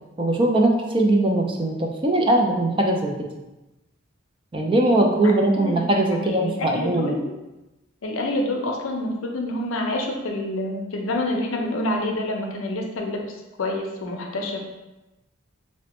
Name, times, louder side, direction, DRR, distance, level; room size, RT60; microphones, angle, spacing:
voice 1, 0.2-3.1 4.5-7.1, right 1 dB, 25° right, 1 dB, 0.3 m, -20 dB
voice 2, 5.2-7.4 8.0-14.6, left 1 dB, 85° left, 2 dB, 0.5 m, -28 dB
4.1 x 2.1 x 2.9 m, 1.0 s
head